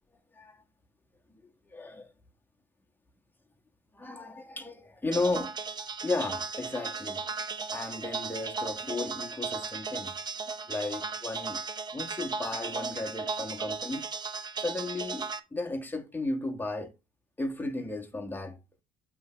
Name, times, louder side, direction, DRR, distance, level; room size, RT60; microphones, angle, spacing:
voice 1, 1.7-2.1 3.9-5.5 6.0-7.3 7.7-10.1 10.7-11.6 11.9-14.0 14.6-16.9 17.4-18.6, left 2 dB, 10° left, 1.3 m, -34 dB
sound 1, 5.1-15.4, right 4 dB, 25° right, 0.7 m, -36 dB
7.9 x 3.3 x 4.9 m
cardioid pair, 110°, 17 cm